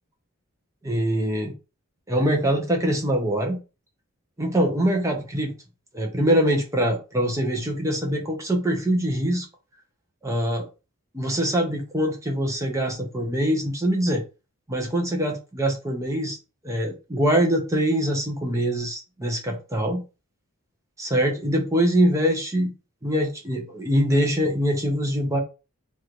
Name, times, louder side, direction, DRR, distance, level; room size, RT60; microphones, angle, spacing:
voice 1, 0.8-1.5 2.1-3.6 4.4-5.5 5.9-9.5 10.2-10.7 11.1-14.2 14.7-16.4 16.6-20.0 21.0-22.7 23.0-25.4, equal, 15° right, 0.7 m, -23 dB
3.3 x 2.5 x 4.5 m
head